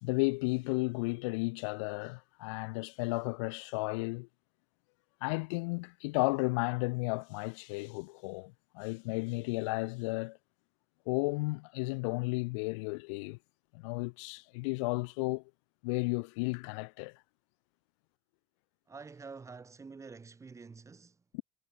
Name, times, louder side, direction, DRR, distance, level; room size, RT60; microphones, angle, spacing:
voice 1, 0.0-4.3 5.2-10.4 11.1-13.4 13.7-15.4 15.8-17.1 21.3-21.4, left 29 dB, 85° left, 1.3 m, -33 dB
voice 2, 18.9-21.2, right 4 dB, 20° right, 3.2 m, -48 dB
supercardioid pair, 115°, 15 cm